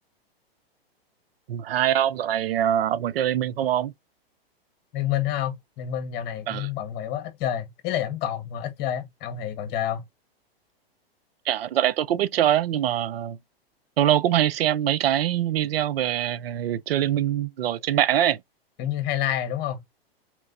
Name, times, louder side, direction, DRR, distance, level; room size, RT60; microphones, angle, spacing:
voice 1, 1.5-3.9 6.5-6.7 11.5-13.4 14.0-18.4, right 11 dB, 70° right, 0.6 m, -23 dB
voice 2, 4.9-10.0 18.8-19.8, left 11 dB, 35° left, 1.6 m, -28 dB
4.6 x 3.3 x 2.6 m
hypercardioid pair, 125°, 31 cm